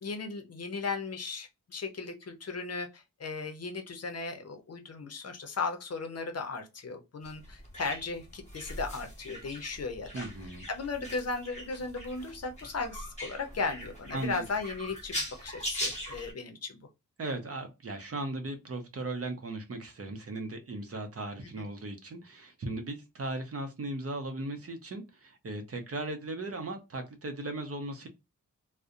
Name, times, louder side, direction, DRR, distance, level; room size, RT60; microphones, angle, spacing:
voice 1, 0.0-10.2 10.7-16.8 21.6-21.7, left 4 dB, 50° left, 6 dB, 0.6 m, -36 dB
sound 1, 7.2-16.3, equal, 20° left, 1.0 m, -41 dB
voice 2, 10.1-10.7 14.1-14.4 17.2-28.1, right 2 dB, 45° right, 6 dB, 0.6 m, -37 dB
2.6 x 2.0 x 2.4 m, 0.24 s
wide cardioid pair, 75°, 32 cm